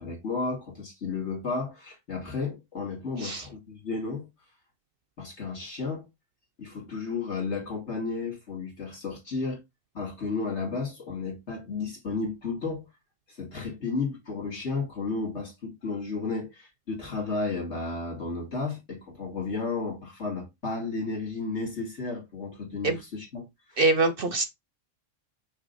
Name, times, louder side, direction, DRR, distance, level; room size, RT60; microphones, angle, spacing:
voice 1, 0.0-4.3 5.2-6.1 6.6-9.6 9.9-12.8 13.3-23.4 23.7-23.8, left 4 dB, 60° left, 2.9 m, -33 dB
voice 2, 23.8-24.4, right 3 dB, 55° right, 0.7 m, -24 dB
6.2 x 3.8 x 4.0 m
omnidirectional pair, 1.3 m